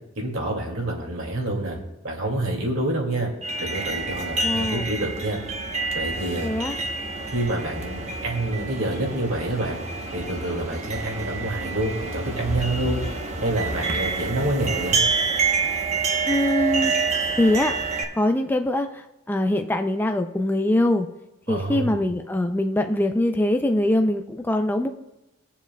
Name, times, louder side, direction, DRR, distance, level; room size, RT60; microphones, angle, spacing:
voice 1, 0.2-1.8 2.0-3.3 3.6-5.4 5.9-6.5 7.3-9.8 10.1-13.0 13.4-15.0 21.5-22.0, right 1 dB, 60° right, -1 dB, 2.2 m, -27 dB
sound 1, 3.4-18.0, right 4 dB, 30° right, 1.0 m, -27 dB
voice 2, 4.4-4.8 6.4-6.8 16.3-16.9 17.3-17.7 18.2-21.1 21.5-24.9, left 1 dB, 10° left, 6 dB, 0.3 m, -23 dB
20.0 x 7.2 x 2.2 m, 0.94 s
head